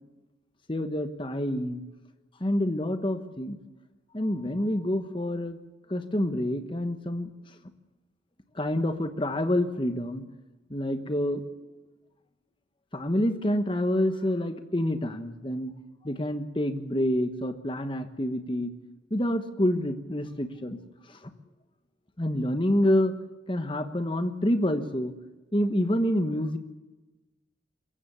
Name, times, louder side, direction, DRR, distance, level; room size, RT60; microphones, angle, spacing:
voice 1, 0.7-1.8 2.4-3.6 4.1-5.6 5.9-7.3 8.6-10.2 10.7-11.4 12.9-15.7 16.0-18.7 19.1-20.8 22.2-23.1 23.5-25.1 25.5-26.6, left 1 dB, 25° left, 9 dB, 1.2 m, -27 dB
22.0 x 15.5 x 8.3 m, 1.2 s
head